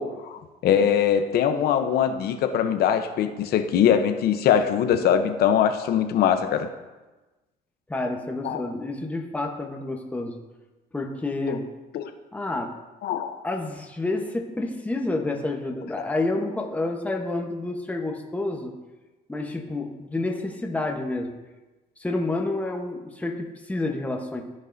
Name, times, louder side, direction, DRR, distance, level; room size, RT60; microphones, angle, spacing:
voice 1, 0.0-6.7 8.4-8.7 11.5-11.6 11.9-12.1 13.0-13.4, left 8 dB, 70° left, 8 dB, 0.8 m, -22 dB
voice 2, 7.9-10.4 10.9-11.7 12.3-12.7 13.4-18.7 19.3-21.3 22.0-24.4, left 2 dB, 10° left, 2 dB, 1.0 m, -29 dB
14.5 x 5.4 x 2.6 m, 1.1 s
cardioid pair, 110°, 17 cm